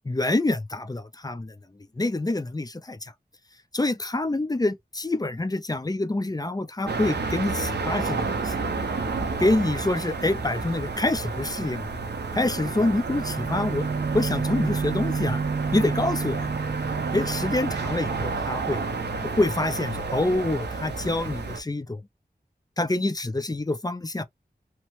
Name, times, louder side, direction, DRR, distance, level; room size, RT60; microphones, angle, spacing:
voice 1, 0.1-1.5 2.0-3.1 3.7-8.5 9.4-11.9 12.3-13.9 14.1-15.4 15.7-16.5 17.1-18.8 19.2-22.0 22.8-24.2, left 2 dB, 20° left, 0.5 m, -26 dB
sound 1, 6.9-21.6, right 4 dB, 85° right, 0.6 m, -31 dB
sound 2, 13.1-18.4, right 5 dB, 40° right, 0.4 m, -30 dB
2.9 x 2.0 x 3.0 m
wide cardioid pair, 55°, 17 cm